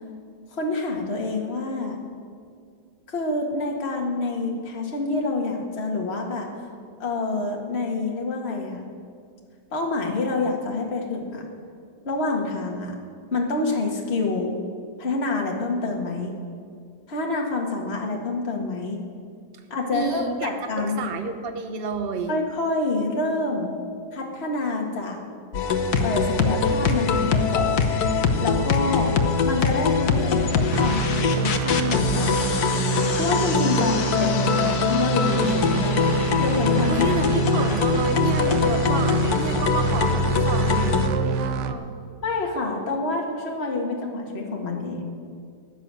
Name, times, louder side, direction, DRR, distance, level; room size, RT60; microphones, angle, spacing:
voice 1, 0.5-2.0 3.1-6.5 7.0-8.8 9.7-11.4 12.1-13.0 13.3-14.6 15.0-16.3 17.1-19.0 19.7-21.0 22.3-23.7 24.1-25.2 26.0-27.9 28.4-29.1 29.4-32.9 33.2-37.5 42.2-45.1, left 3 dB, 35° left, 0 dB, 1.9 m, -27 dB
voice 2, 19.9-20.5 20.8-22.3 36.9-41.9, right 5 dB, 40° right, 7 dB, 1.1 m, -30 dB
sound 1, 25.5-41.1, left 5 dB, 65° left, 1.5 m, -23 dB
sound 2, 30.7-41.7, right 6 dB, 75° right, 1.4 m, -27 dB
16.0 x 10.5 x 7.6 m, 2.2 s
omnidirectional pair, 1.9 m